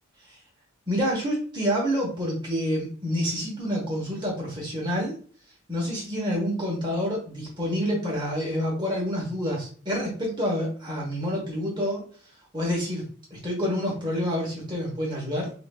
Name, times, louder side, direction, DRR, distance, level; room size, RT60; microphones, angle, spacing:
voice 1, 0.9-5.1 5.7-12.1 12.5-13.0 13.3-15.6, equal, 20° right, -4 dB, 1.2 m, -28 dB
5.8 x 2.6 x 2.4 m, 0.43 s
head